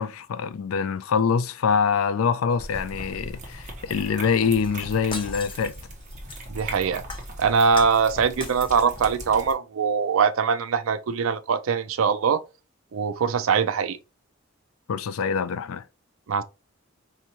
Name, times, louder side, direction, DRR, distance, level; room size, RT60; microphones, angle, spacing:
voice 1, 0.0-5.8 14.9-15.8, left 6 dB, 90° left, 0.4 m, -25 dB
sound 1, 2.6-9.5, right 1 dB, 40° right, 1.1 m, -39 dB
Shatter, 4.6-6.7 7.1-8.1 8.4-9.1 9.5-9.6, left 3 dB, 25° left, 0.7 m, -39 dB
voice 2, 6.5-7.0 7.4-12.4 12.9-14.0 16.3-16.4, right 6 dB, 75° right, 0.4 m, -22 dB
4.4 x 2.6 x 2.9 m
head